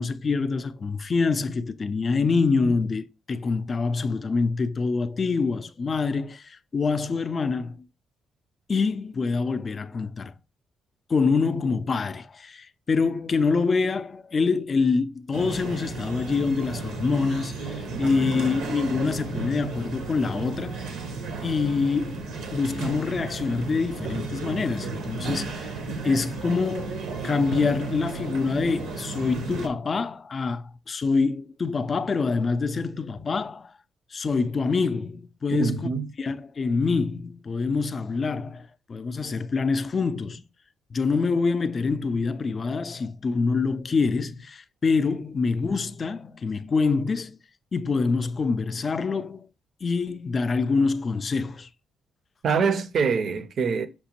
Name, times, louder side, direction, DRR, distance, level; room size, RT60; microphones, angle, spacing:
voice 1, 0.0-7.9 8.7-10.3 11.1-20.9 21.4-25.7 26.0-33.7 34.1-35.9 36.2-40.4 40.9-47.4 47.7-49.5 49.8-51.7, left 4 dB, 40° left, 0.3 m, -26 dB
sound 1, 15.3-29.7, right 4 dB, 85° right, 0.8 m, -34 dB
voice 2, 17.9-18.4 35.6-36.1 52.4-53.9, right 5 dB, 60° right, 0.5 m, -25 dB
5.7 x 2.1 x 2.9 m
cardioid pair, 90°, 0 cm